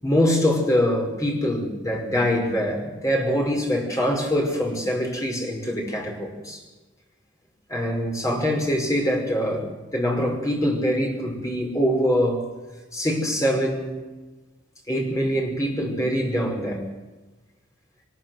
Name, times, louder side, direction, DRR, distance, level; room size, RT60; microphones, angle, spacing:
voice 1, 0.0-6.6 7.7-12.4 12.9-14.0 14.9-16.9, equal, 15° left, 1 dB, 5.5 m, -24 dB
23.0 x 21.0 x 8.0 m, 1.2 s
head